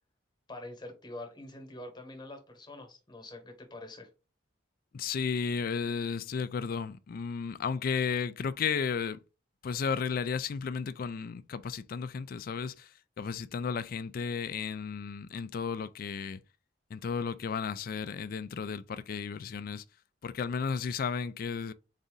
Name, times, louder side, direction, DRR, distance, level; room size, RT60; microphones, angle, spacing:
voice 1, 0.5-4.1, left 2 dB, 20° left, 1.1 m, -45 dB
voice 2, 4.9-9.2 9.6-16.4 16.9-19.8 20.2-21.7, left 6 dB, 45° left, 0.3 m, -33 dB
4.1 x 2.7 x 3.6 m
head